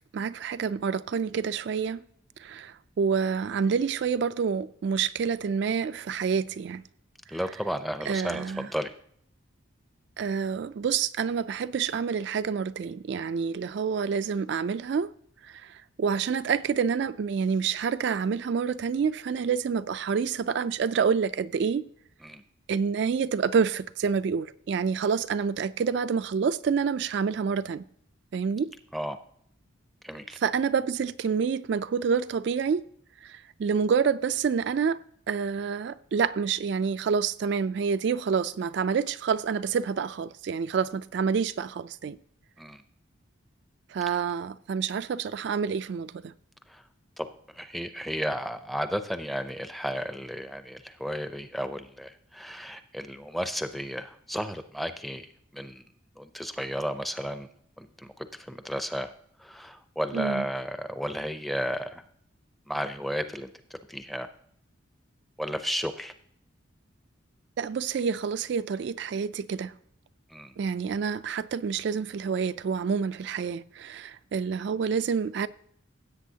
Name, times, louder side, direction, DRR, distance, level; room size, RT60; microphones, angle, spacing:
voice 1, 0.1-2.1 2.4-6.8 8.1-8.7 10.2-15.1 15.5-21.8 22.7-27.8 28.3-28.7 30.4-32.8 33.2-35.0 35.3-42.2 43.9-46.3 60.1-60.4 67.6-69.7 70.6-75.5, right 6 dB, 55° right, 0.3 m, -28 dB
voice 2, 7.3-8.9 22.2-22.4 28.9-29.2 30.0-30.4 42.6-42.8 44.1-44.2 46.7-46.8 47.2-55.8 56.2-57.5 57.8-59.1 59.4-62.0 62.7-64.3 65.4-66.1 70.3-70.6, equal, ahead, 0.5 m, -33 dB
16.5 x 8.2 x 2.8 m
head